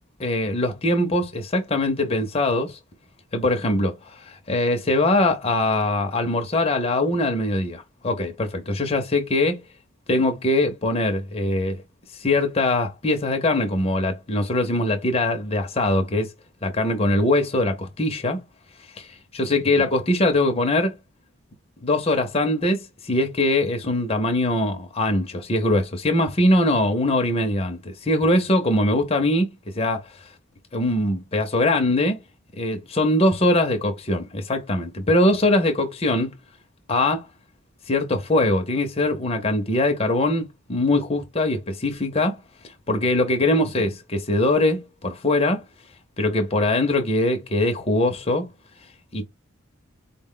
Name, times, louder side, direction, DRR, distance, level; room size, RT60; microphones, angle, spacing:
voice 1, 0.2-2.8 3.3-9.6 10.1-11.8 12.2-16.3 16.6-18.4 19.4-21.0 21.8-30.1 30.7-32.2 32.6-36.3 36.9-37.3 37.9-42.4 42.9-45.6 46.2-48.5 49.1-49.2, left 1 dB, 25° left, 0.6 m, -22 dB
3.9 x 2.1 x 3.7 m
head